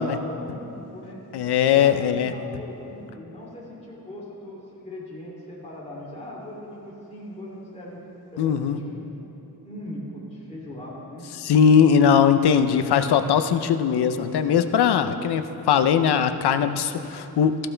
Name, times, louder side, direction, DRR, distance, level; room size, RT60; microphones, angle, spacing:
voice 1, 0.0-1.2 1.7-8.0 8.3-9.1 9.6-11.2, left 1 dB, 15° left, -6 dB, 2.9 m, -39 dB
voice 2, 1.3-2.3 8.4-8.8 11.4-17.6, left 7 dB, 85° left, 10 dB, 0.7 m, -20 dB
16.0 x 14.5 x 3.4 m, 2.9 s
wide cardioid pair, 115°, 38 cm